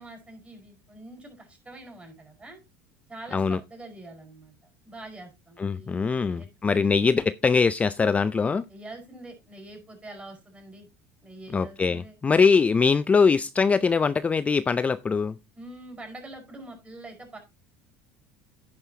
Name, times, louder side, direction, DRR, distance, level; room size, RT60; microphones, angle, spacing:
voice 1, 0.0-2.6 3.1-4.5 4.8-7.1 8.7-10.9 11.2-12.1 15.5-17.4, right 2 dB, 15° right, 5.0 m, -45 dB
voice 2, 5.6-8.6 11.5-15.4, left 5 dB, 20° left, 0.4 m, -22 dB
10.0 x 9.7 x 2.8 m
supercardioid pair, 105°, 7 cm